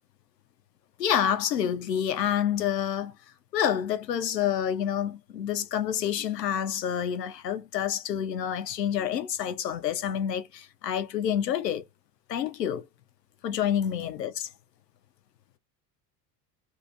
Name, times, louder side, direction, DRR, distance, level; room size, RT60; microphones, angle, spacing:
voice 1, 1.0-3.2 3.5-11.8 12.3-12.8 13.4-14.5, left 9 dB, 85° left, 0.6 m, -28 dB
2.6 x 2.5 x 2.5 m
figure-of-eight pair, 65°, 49 cm